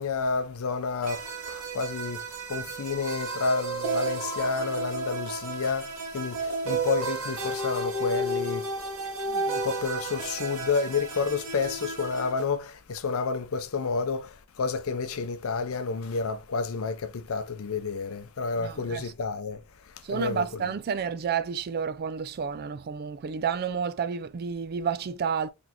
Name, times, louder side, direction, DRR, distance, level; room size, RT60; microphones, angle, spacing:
voice 1, 0.0-8.7 9.3-19.6 20.1-20.5, left 4 dB, 75° left, 0.5 m, -30 dB
sound 1, 1.0-12.3, right 2 dB, 75° right, 1.1 m, -32 dB
voice 2, 18.6-19.1 20.0-25.5, right 6 dB, 45° right, 0.4 m, -30 dB
4.1 x 3.3 x 2.8 m
head